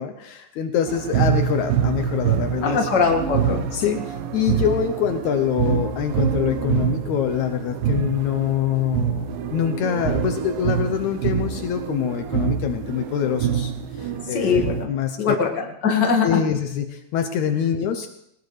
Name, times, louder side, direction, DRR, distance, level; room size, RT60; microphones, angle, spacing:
voice 1, 0.0-3.0 3.7-15.4 16.2-18.1, left 8 dB, 85° left, 7 dB, 1.6 m, -25 dB
sound 1, 0.9-14.9, right 8 dB, 75° right, 2.4 m, -26 dB
voice 2, 2.6-3.7 14.3-14.9 15.2-16.5, left 5 dB, 40° left, 1 dB, 1.8 m, -21 dB
20.5 x 19.5 x 3.3 m, 0.77 s
omnidirectional pair, 4.5 m